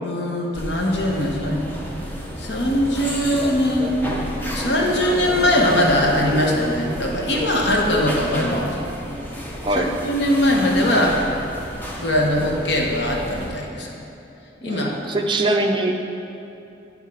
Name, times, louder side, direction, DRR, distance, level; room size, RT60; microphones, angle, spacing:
voice 1, 0.0-1.7 2.4-3.9 4.5-8.8 9.7-11.2 12.0-13.9 14.6-15.1, left 1 dB, 70° left, 0 dB, 0.9 m, -21 dB
sound 1, 0.5-13.5, equal, 10° left, 0.7 m, -30 dB
voice 2, 14.6-15.9, right 2 dB, 25° right, 2 dB, 0.5 m, -22 dB
10.5 x 3.6 x 4.8 m, 2.7 s
head